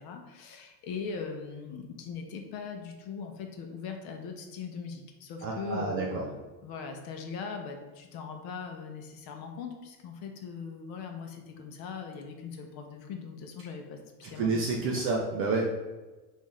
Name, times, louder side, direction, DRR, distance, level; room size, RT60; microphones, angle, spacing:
voice 1, 0.0-14.6 14.9-15.0, left 5 dB, 45° left, 3 dB, 0.7 m, -40 dB
voice 2, 5.4-6.2 14.4-15.7, right 3 dB, 30° right, -1 dB, 0.4 m, -29 dB
5.5 x 2.7 x 3.1 m, 1.2 s
supercardioid pair, 135°, 50 cm